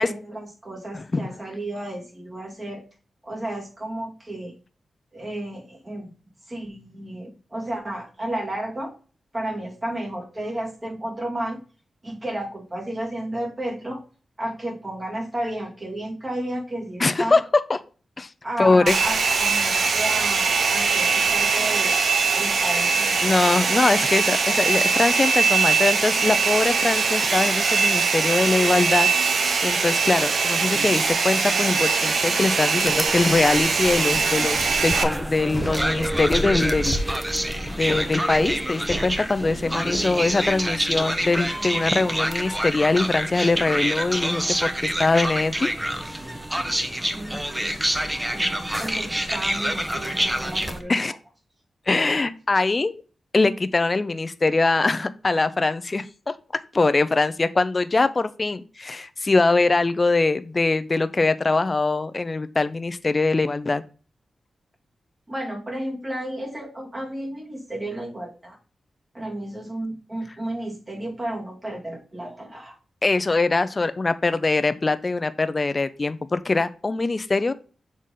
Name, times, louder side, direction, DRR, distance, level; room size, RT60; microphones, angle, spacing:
voice 1, 0.0-2.8 3.2-4.5 5.1-6.1 6.5-8.9 9.3-11.6 12.0-14.0 14.4-17.4 18.4-22.0 22.3-23.2 23.6-23.7 39.6-39.8 47.1-51.0 65.3-68.6 69.1-72.8, right 1 dB, 30° right, 0 dB, 2.0 m, -32 dB
voice 2, 17.0-17.4 17.7-17.8 18.2-18.3 18.6-19.0 23.2-29.1 29.4-37.0 37.7-45.7 50.9-51.1 51.9-53.0 53.3-56.0 56.7-63.8 73.0-77.5, left 3 dB, 40° left, 12 dB, 0.5 m, -22 dB
Domestic sounds home sounds, 18.9-35.0, right 5 dB, 75° right, 0.7 m, -22 dB
sound 1, 32.8-50.8, right 1 dB, 15° right, 0.8 m, -27 dB
6.5 x 4.1 x 3.7 m, 0.38 s
cardioid pair, 70°, 0 cm